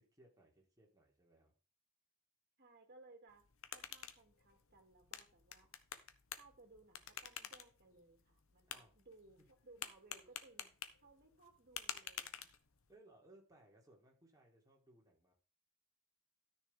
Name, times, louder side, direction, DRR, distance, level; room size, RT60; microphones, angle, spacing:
voice 1, 0.0-1.5 8.7-8.9 9.4-9.5 12.9-15.3, right 1 dB, 15° right, -1 dB, 3.5 m, -65 dB
voice 2, 2.6-3.5 3.7-5.7 6.4-10.7 11.0-12.5, right 2 dB, 45° right, 3 dB, 2.9 m, -63 dB
sound 1, 3.3-12.9, left 9 dB, 65° left, 1.0 m, -51 dB
13.0 x 6.4 x 3.7 m, 0.34 s
head